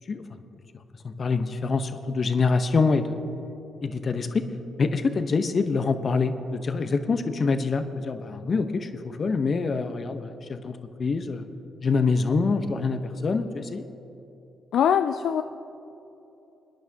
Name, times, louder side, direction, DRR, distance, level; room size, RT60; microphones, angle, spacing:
voice 1, 1.0-3.2 3.8-4.4 4.8-11.5 11.8-13.8, left 4 dB, 50° left, 9 dB, 0.9 m, -25 dB
voice 2, 14.7-15.4, left 8 dB, 70° left, 8 dB, 0.3 m, -22 dB
24.0 x 10.0 x 2.8 m, 2.9 s
supercardioid pair, 55°, 0 cm